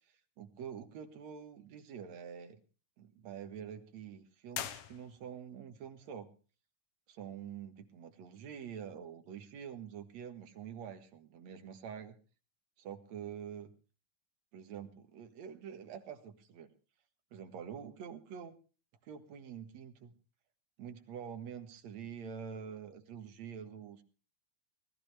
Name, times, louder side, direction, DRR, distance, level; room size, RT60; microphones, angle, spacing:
voice 1, 0.4-2.6 3.0-6.3 7.1-12.2 12.8-13.7 14.5-16.7 17.3-18.5 19.0-20.2 20.8-24.0, right 8 dB, 60° right, 7 dB, 2.6 m, -46 dB
sound 1, 4.5-5.5, left 10 dB, 75° left, 2.5 m, -42 dB
19.5 x 14.5 x 3.4 m, 0.37 s
omnidirectional pair, 3.7 m